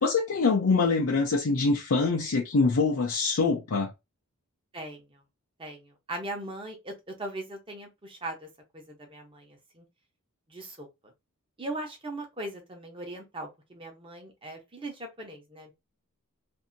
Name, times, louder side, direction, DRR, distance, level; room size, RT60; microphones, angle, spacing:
voice 1, 0.0-3.9, left 4 dB, 75° left, 0.6 m, -24 dB
voice 2, 4.7-5.2 5.6-8.5 8.7-9.8 10.5-10.9 11.6-15.7, right 1 dB, 25° right, 0.9 m, -39 dB
2.7 x 2.6 x 2.6 m
head